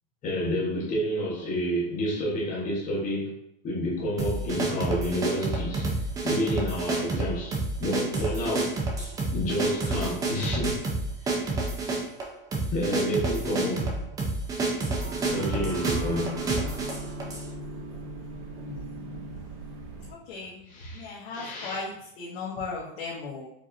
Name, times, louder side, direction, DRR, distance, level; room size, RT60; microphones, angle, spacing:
voice 1, 0.2-3.3 3.6-6.0 6.2-10.8 11.2-11.5 12.7-13.9 15.3-16.4 20.7-21.8, equal, 25° left, -3 dB, 1.0 m, -30 dB
sound 1, 4.2-17.5, right 3 dB, 10° right, 0.4 m, -29 dB
voice 2, 13.6-14.0 18.6-18.8 20.1-20.7 20.9-23.5, left 4 dB, 80° left, -5 dB, 1.1 m, -37 dB
sound 2, 15.0-20.1, right 1 dB, 45° right, 1.4 m, -39 dB
4.6 x 2.8 x 2.6 m, 0.76 s
supercardioid pair, 150°, 29 cm